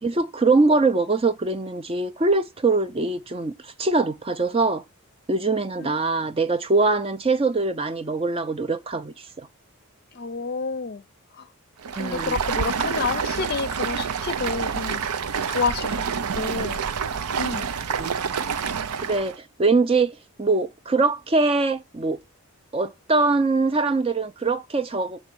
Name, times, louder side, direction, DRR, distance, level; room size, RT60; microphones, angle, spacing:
voice 1, 0.0-4.8 5.3-9.5 12.0-12.4 18.0-18.1 19.0-22.2 22.7-25.2, right 3 dB, 25° right, 0.4 m, -23 dB
voice 2, 10.1-11.0 11.3-11.5 11.9-15.0 15.5-16.8 17.4-17.7, left 4 dB, 45° left, 0.5 m, -29 dB
Stream, 11.8-19.4, right 6 dB, 90° right, 0.6 m, -28 dB
7.9 x 3.2 x 6.1 m
head